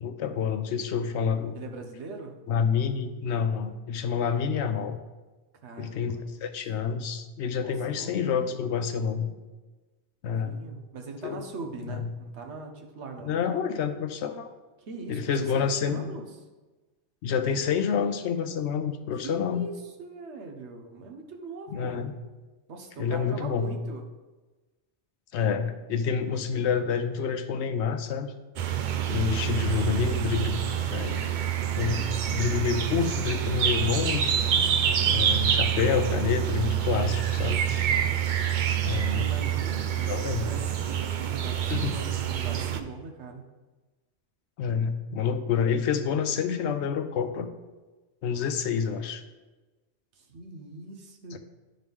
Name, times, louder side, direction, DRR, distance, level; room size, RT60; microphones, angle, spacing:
voice 1, 0.0-1.6 2.5-5.0 5.8-6.2 6.4-9.3 10.2-10.6 11.2-11.4 11.9-12.1 13.2-14.5 15.1-16.1 17.2-19.7 21.7-22.1 23.0-23.7 25.3-28.3 29.1-30.5 30.9-31.3 31.8-34.3 34.6-34.7 35.1-37.6 38.8-39.3 40.1-40.5 41.7-41.9 44.6-47.5 48.2-49.2 51.3-51.4, left 6 dB, 80° left, 8 dB, 0.9 m, -28 dB
voice 2, 1.5-2.4 5.6-6.4 7.6-8.6 10.2-13.4 14.9-16.3 19.2-22.0 22.7-24.1 39.0-43.4 50.2-51.4, right 3 dB, 80° right, 3 dB, 1.2 m, -41 dB
sound 1, 28.6-42.8, right 9 dB, 55° right, 0.6 m, -27 dB
10.5 x 3.9 x 3.5 m, 1.2 s
omnidirectional pair, 1.1 m